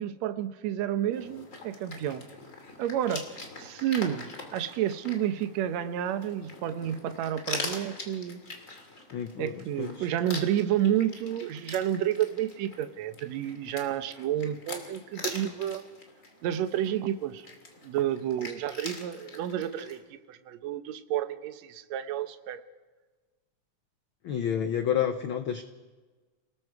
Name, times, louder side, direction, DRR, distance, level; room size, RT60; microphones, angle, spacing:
voice 1, 0.0-2.3 2.8-3.3 3.6-8.4 9.4-15.8 16.4-17.5 17.8-22.6, right 10 dB, 70° right, 10 dB, 2.1 m, -30 dB
sound 1, 1.1-20.0, left 3 dB, 25° left, 2.5 m, -43 dB
voice 2, 9.1-10.1 24.2-25.6, left 9 dB, 80° left, 8 dB, 1.1 m, -30 dB
29.0 x 19.0 x 4.7 m, 1.3 s
omnidirectional pair, 3.4 m